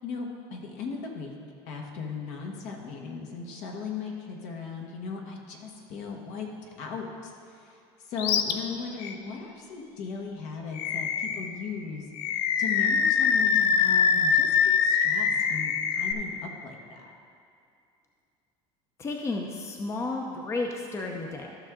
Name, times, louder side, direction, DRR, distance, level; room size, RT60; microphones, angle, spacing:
voice 1, 0.0-1.3 1.7-7.3 7.6-7.8 8.0-12.0 12.3-14.5 14.8-16.3 16.6-17.1, left 5 dB, 65° left, 1 dB, 1.5 m, -37 dB
Animal, 8.2-8.5 9.0-9.1 10.8-11.5 12.2-16.1, left 7 dB, 85° left, 0.6 m, -24 dB
voice 2, 19.0-21.6, left 3 dB, 20° left, 2 dB, 0.7 m, -32 dB
13.5 x 6.1 x 3.8 m, 2.5 s
cardioid pair, 135°, 13 cm